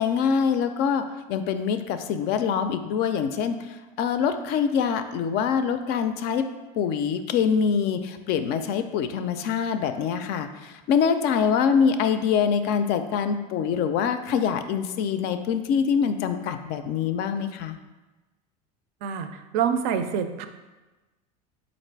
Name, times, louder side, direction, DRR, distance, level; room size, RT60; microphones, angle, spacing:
voice 1, 0.0-6.5 6.8-17.8, left 7 dB, 55° left, 9 dB, 0.4 m, -24 dB
voice 2, 19.0-20.5, right 7 dB, 70° right, 9 dB, 0.5 m, -26 dB
4.0 x 2.5 x 4.6 m, 1.1 s
supercardioid pair, 115°, 20 cm